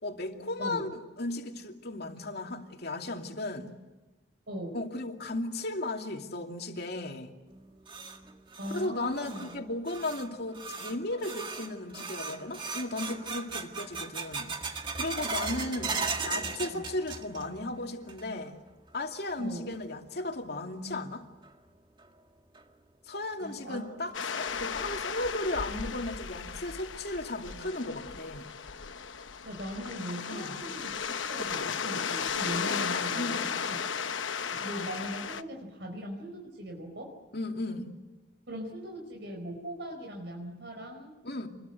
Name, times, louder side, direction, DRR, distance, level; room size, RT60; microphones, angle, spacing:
voice 1, 0.0-3.7 4.7-7.3 8.7-14.5 15.0-15.9 16.2-18.5 18.9-21.3 23.1-28.4 30.3-30.6 33.1-33.5 37.3-37.9 41.2-41.5, left 2 dB, 55° left, 2.6 m, -35 dB
voice 2, 4.5-4.8 8.6-9.5 16.7-16.9 19.4-19.7 23.4-23.9 29.4-31.0 31.3-33.9 34.5-37.1 38.5-41.1, equal, 65° right, 4.7 m, -40 dB
sound 1, 7.5-17.6 17.9-18.5 18.9-19.0 19.7-19.8 21.4-21.5 22.0-22.1 22.6-22.7 23.1-23.2 23.7-24.1, right 4 dB, 25° right, 1.9 m, -38 dB
sound 2, 24.1-35.4, left 6 dB, 80° left, 1.0 m, -35 dB
27.5 x 22.0 x 8.1 m
head